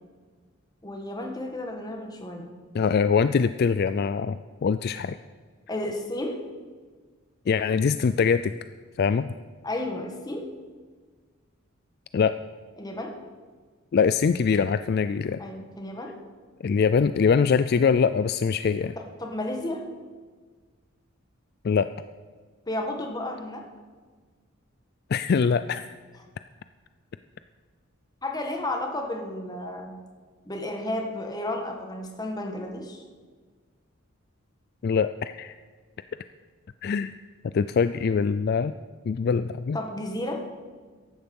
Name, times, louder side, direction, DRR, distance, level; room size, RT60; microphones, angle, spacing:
voice 1, 0.8-2.5 5.7-6.4 9.6-10.5 12.8-13.1 15.4-16.1 19.2-19.8 22.7-23.6 28.2-30.0 30.5-33.0 39.7-40.4, left 1 dB, 20° left, 2 dB, 1.6 m, -32 dB
voice 2, 2.7-5.2 7.5-8.5 9.0-9.3 12.1-12.3 13.9-15.4 16.6-18.9 21.6-21.9 25.1-26.0 34.8-35.6 36.8-37.1 37.5-38.7 39.1-39.8, left 6 dB, 50° left, 12 dB, 0.3 m, -23 dB
14.5 x 11.5 x 5.4 m, 1.5 s
head